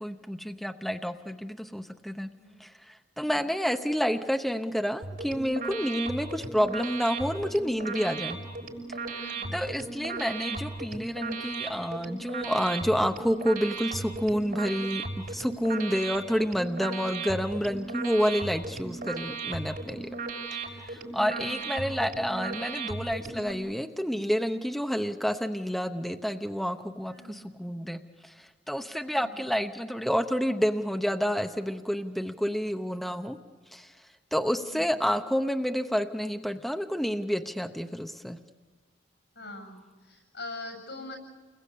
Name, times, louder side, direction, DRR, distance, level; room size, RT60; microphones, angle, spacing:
voice 1, 0.0-2.3 2.6-8.4 9.1-9.2 9.5-20.1 20.5-33.4 33.7-33.9 34.3-38.4, equal, ahead, 6 dB, 0.8 m, -29 dB
sound 1, 5.0-23.5, right 3 dB, 55° right, 6.3 m, -36 dB
voice 2, 9.2-9.6 21.1-21.7 27.0-27.5 29.1-29.3 34.3-34.9 39.3-39.8 40.0-41.2, left 2 dB, 75° left, 4 dB, 7.6 m, -44 dB
30.0 x 21.5 x 8.5 m, 1.4 s
head